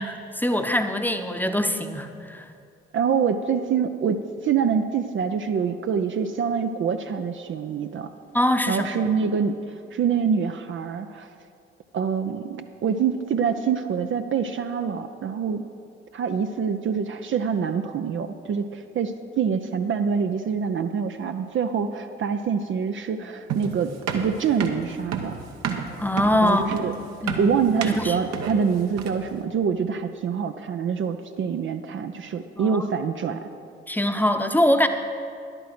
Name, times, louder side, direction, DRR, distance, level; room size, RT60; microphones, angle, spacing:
voice 1, 0.0-2.5 8.3-8.9 26.0-26.8 27.2-27.6 27.8-28.2 32.6-32.8 33.9-34.9, left 1 dB, 5° left, 7 dB, 0.9 m, -23 dB
voice 2, 2.9-8.1 8.7-11.3 11.9-15.7 16.1-25.4 26.4-26.9 27.4-33.5, right 6 dB, 40° right, 7 dB, 0.6 m, -25 dB
sound 1, 23.5-29.3, right 6 dB, 60° right, 1.1 m, -30 dB
11.0 x 8.9 x 6.0 m, 2.4 s
figure-of-eight pair, 40°, 31 cm